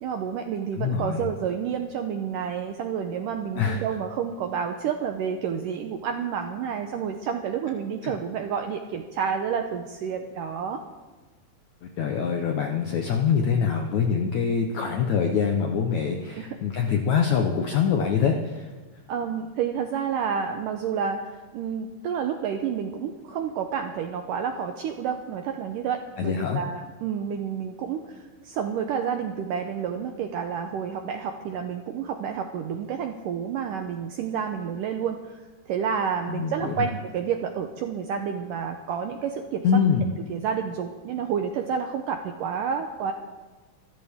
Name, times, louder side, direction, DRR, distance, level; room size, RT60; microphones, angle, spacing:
voice 1, 0.0-10.8 16.4-16.5 19.1-39.6 40.3-43.1, right 7 dB, 80° right, 5 dB, 1.9 m, -30 dB
voice 2, 0.8-1.2 3.6-3.8 8.0-8.2 12.0-18.7 26.2-26.6 36.3-36.9 39.6-40.1, left 7 dB, 75° left, 3 dB, 1.7 m, -24 dB
25.0 x 13.5 x 3.6 m, 1.3 s
omnidirectional pair, 4.7 m